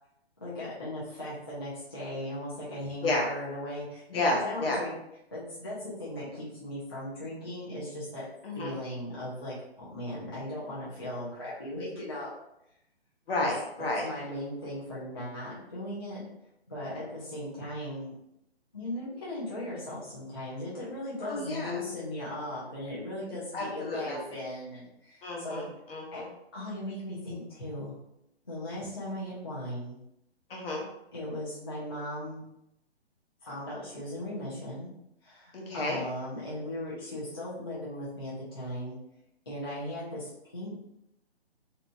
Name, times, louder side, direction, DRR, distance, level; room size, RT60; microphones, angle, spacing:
voice 1, 0.4-4.9 5.3-8.2 8.5-12.3 13.8-16.2 16.7-18.1 18.7-25.7 26.1-26.2 26.5-28.0 28.4-30.0 31.1-32.4 33.4-34.9 35.2-39.0 39.5-40.7, left 1 dB, 25° left, -10 dB, 0.4 m, -38 dB
voice 2, 4.1-4.8 8.4-8.7 13.3-14.1 21.2-21.8 23.5-24.2 25.2-26.3 30.5-30.9 35.5-36.0, left 2 dB, 60° left, -1 dB, 0.9 m, -31 dB
2.6 x 2.2 x 2.6 m, 0.83 s
hypercardioid pair, 165°, 32 cm